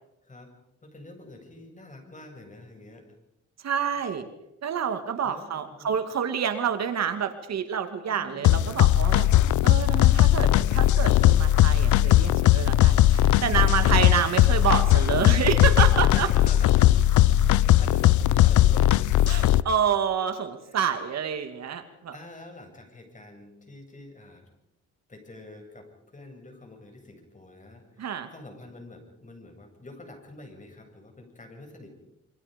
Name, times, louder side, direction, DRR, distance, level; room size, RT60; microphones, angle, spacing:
voice 1, 0.8-3.1 5.2-6.0 8.1-8.5 16.0-19.1 20.7-20.8 22.1-24.4 25.1-31.9, left 2 dB, 25° left, 4 dB, 7.4 m, -46 dB
voice 2, 3.6-4.3 4.6-9.3 9.6-16.3 19.3-22.2 28.0-28.3, right 8 dB, 60° right, 8 dB, 2.4 m, -28 dB
sound 1, 8.4-19.6, left 13 dB, 75° left, 0.8 m, -19 dB
27.0 x 24.5 x 5.3 m, 0.87 s
cardioid pair, 90°, 30 cm